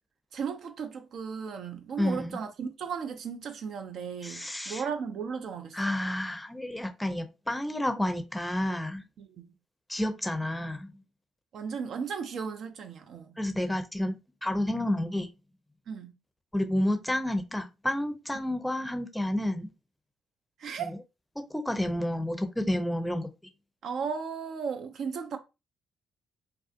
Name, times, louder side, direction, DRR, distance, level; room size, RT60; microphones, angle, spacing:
voice 1, 0.3-6.0 9.2-9.5 11.5-13.3 15.9-16.1 20.6-21.0 23.8-25.4, right 6 dB, 60° right, 0.4 m, -36 dB
voice 2, 2.0-2.4 4.2-4.8 5.7-9.0 9.9-10.9 13.4-14.1 14.4-15.3 16.5-19.7 20.8-21.0 21.4-23.3, left 1 dB, 10° left, 0.5 m, -30 dB
2.4 x 2.4 x 2.4 m
hypercardioid pair, 45°, 0 cm